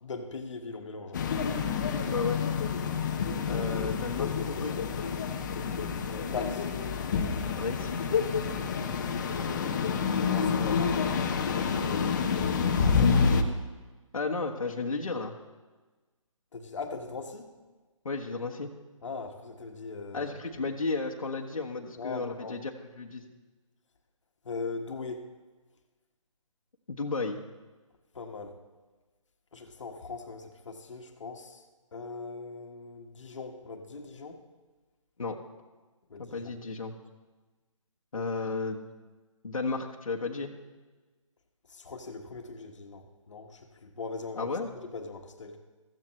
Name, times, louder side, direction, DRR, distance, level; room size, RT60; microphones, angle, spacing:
voice 1, 0.0-1.2 6.1-6.7 9.3-9.8 10.2-11.0 12.6-13.2 16.5-17.5 19.0-20.3 22.0-22.6 24.4-25.3 28.1-28.6 29.5-31.6 31.9-34.4 36.1-36.5 38.1-38.2 41.7-45.6, left 4 dB, 60° left, 4 dB, 1.5 m, -40 dB
sound 1, 1.1-13.4, left 5 dB, 35° left, 1.0 m, -28 dB
voice 2, 3.5-4.8 7.5-8.0 11.8-12.0 14.1-15.3 18.0-18.7 20.1-22.7 23.0-23.2 26.9-27.4 35.2-35.4 36.2-36.9 38.1-38.9 39.4-40.5 44.4-44.7, left 3 dB, 80° left, 0 dB, 1.4 m, -33 dB
15.5 x 14.5 x 3.2 m, 1.3 s
figure-of-eight pair, 150°, 17 cm